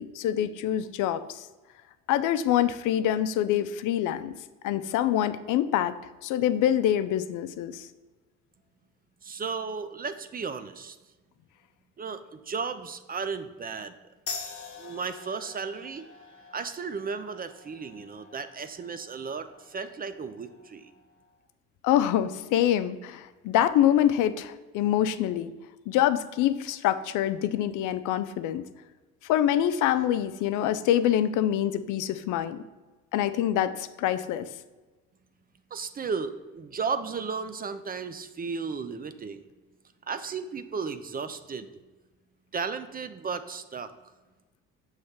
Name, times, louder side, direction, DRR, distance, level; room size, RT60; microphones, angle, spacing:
voice 1, 0.0-1.5 2.1-4.3 4.6-6.0 6.2-7.9 21.8-25.5 25.9-28.6 29.2-32.6 33.1-34.5, left 11 dB, 70° left, 13 dB, 0.5 m, -25 dB
voice 2, 9.2-11.0 12.0-13.9 14.8-16.0 16.5-20.9 35.7-39.5 40.1-41.8 42.5-43.9, right 5 dB, 30° right, 11 dB, 0.5 m, -34 dB
sound 1, 14.3-21.4, left 5 dB, 45° left, 1.2 m, -45 dB
6.4 x 3.2 x 5.7 m, 1.2 s
supercardioid pair, 75°, 32 cm